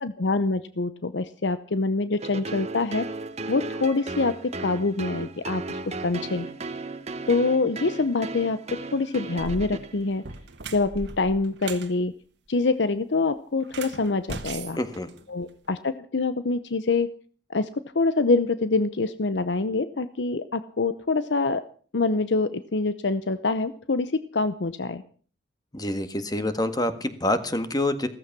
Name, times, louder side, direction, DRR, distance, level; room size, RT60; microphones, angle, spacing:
voice 1, 0.0-3.1 3.5-6.5 7.3-10.2 10.7-12.1 12.5-14.8 15.3-17.1 17.5-17.7 17.9-21.6 21.9-25.0, left 3 dB, 85° left, 12 dB, 0.8 m, -25 dB
sound 1, 2.2-10.3, right 3 dB, 40° right, 1.1 m, -35 dB
sound 2, 9.3-9.6 10.1-11.9 13.6-15.7, right 4 dB, 75° right, 1.6 m, -39 dB
voice 2, 14.8-15.1 25.7-28.1, left 1 dB, 25° left, 10 dB, 1.7 m, -26 dB
16.0 x 14.5 x 6.0 m, 0.43 s
head